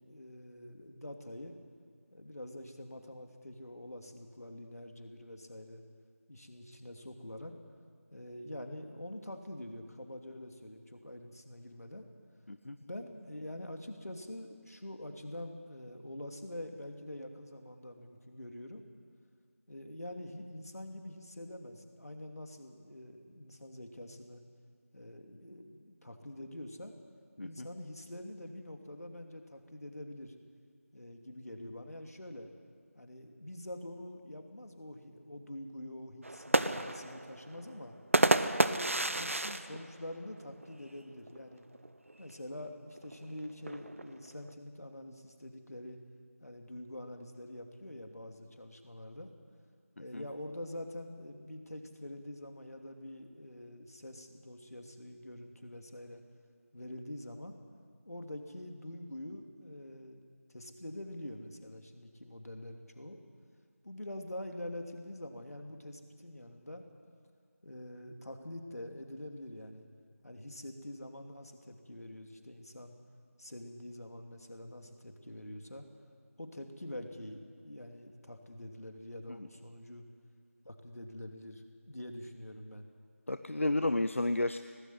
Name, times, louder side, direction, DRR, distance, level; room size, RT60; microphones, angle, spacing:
voice 1, 0.0-1.6 2.1-5.8 6.3-7.5 8.1-12.1 12.8-18.8 19.7-24.4 24.9-26.9 27.4-30.3 30.9-32.5 32.9-37.9 38.5-41.6 42.2-46.0 46.4-49.3 50.0-56.2 56.7-57.6 58.0-60.2 60.5-63.2 63.8-66.8 67.6-69.9 70.2-72.9 73.4-75.9 76.4-80.0 80.6-82.9, left 1 dB, 80° left, 4 dB, 2.9 m, -45 dB
sound 1, 36.2-40.9 41.3-41.4 41.7-42.1 43.0-44.5, right 1 dB, 60° right, 0.9 m, -31 dB
voice 2, 83.3-84.6, left 2 dB, 55° left, 10 dB, 0.7 m, -31 dB
18.5 x 15.5 x 9.4 m, 2.1 s
figure-of-eight pair, 175°, 8 cm